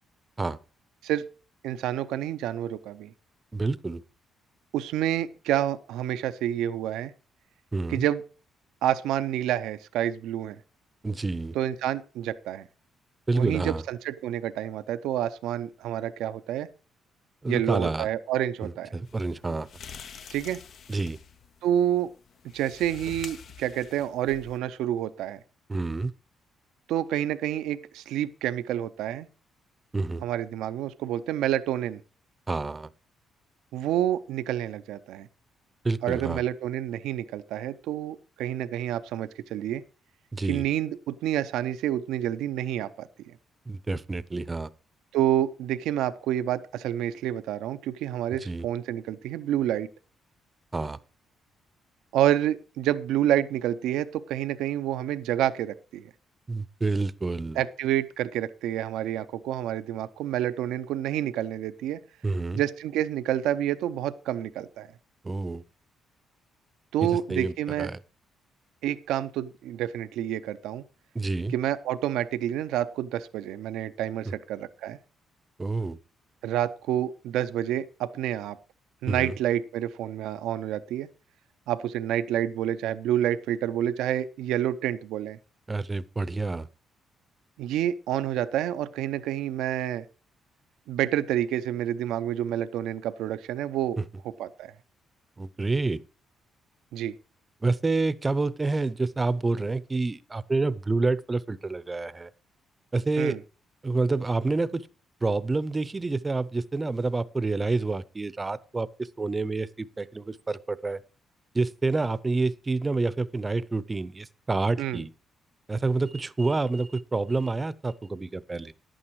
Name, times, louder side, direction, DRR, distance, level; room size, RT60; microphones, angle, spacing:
voice 1, 1.6-3.1 4.7-7.1 7.9-8.2 8.8-10.6 11.5-12.7 13.3-16.7 17.5-18.9 20.3-20.6 21.6-22.1 22.5-25.4 26.9-29.3 30.2-32.0 33.7-35.3 36.0-39.8 40.5-43.3 45.1-49.9 52.1-56.1 57.6-62.0 62.5-64.9 66.9-67.9 68.8-70.8 71.5-75.0 76.4-78.6 79.0-81.1 81.7-85.4 87.6-90.1 90.9-94.0 94.4-94.7 96.9-97.1 103.2-103.4 114.8-115.0, right 11 dB, 90° right, 0.6 m, -28 dB
voice 2, 3.5-4.0 7.7-8.0 11.0-11.5 13.3-13.8 17.4-18.1 18.6-19.7 20.9-21.2 25.7-26.1 29.9-30.2 32.5-32.9 35.8-36.4 40.3-40.6 43.7-44.7 48.4-48.7 50.7-51.0 56.5-57.6 62.2-62.6 65.2-65.6 67.0-68.0 71.1-71.5 74.3-74.4 75.6-76.0 79.1-79.3 85.7-86.7 94.0-94.1 95.4-96.0 97.6-102.3 102.9-103.4 103.8-104.9 105.2-111.0 111.5-115.1 115.7-118.7, right 3 dB, 25° right, 0.7 m, -28 dB
Blinds Opening & Closing - Shuffles & Squeaks, 19.1-24.6, left 7 dB, 60° left, 0.7 m, -46 dB
11.0 x 8.8 x 4.7 m
cardioid pair, 90°, 0 cm